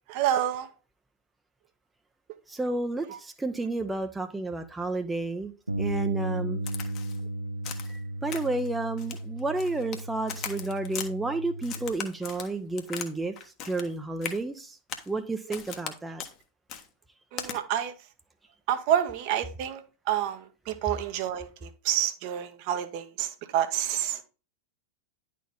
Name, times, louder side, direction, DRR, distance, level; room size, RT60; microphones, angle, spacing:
voice 1, 0.1-0.7 17.3-17.9 18.7-19.8 20.1-24.2, right 11 dB, 45° right, 0.9 m, -28 dB
voice 2, 2.5-5.5 5.8-6.6 7.9-13.3 13.6-14.8 15.1-16.2, right 2 dB, 10° right, 0.6 m, -31 dB
Bass guitar, 5.7-11.9, right 1 dB, 80° right, 0.5 m, -35 dB
Crack, 6.7-7.2 7.6-8.0 8.3-8.7 9.0-10.0 10.3-11.1 11.6-13.1 13.4-13.9 14.2-14.4 14.9-15.1 15.5-15.9 16.2-16.3 16.7-16.8 17.4-17.6, left 8 dB, 40° left, 1.1 m, -38 dB
10.0 x 4.2 x 3.6 m
figure-of-eight pair, 90°, 0 cm